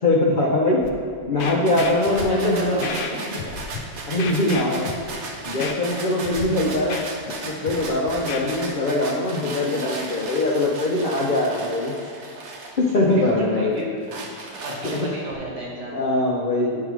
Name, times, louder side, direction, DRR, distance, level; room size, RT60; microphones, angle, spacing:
voice 1, 0.0-0.8 1.3-2.9 4.1-4.9 5.4-7.0 7.4-11.9 12.8-13.8 14.8-15.1 15.9-16.8, left 2 dB, 50° left, -3 dB, 0.6 m, -22 dB
Scratching (performance technique), 0.8-0.9 1.4-2.3 2.8-3.1 3.4-3.8 4.2-5.1 5.6-5.7 6.2-6.4 6.7-7.3 7.7-8.4, left 6 dB, 80° left, 1.3 m, -32 dB
sound 1, 1.7-13.3 13.8-15.3, right 3 dB, 65° right, 1.2 m, -36 dB
voice 2, 2.1-3.3 13.0-14.0 14.6-16.0, right 2 dB, 90° right, -2 dB, 2.0 m, -32 dB
9.7 x 3.8 x 4.6 m, 2.5 s
omnidirectional pair, 1.8 m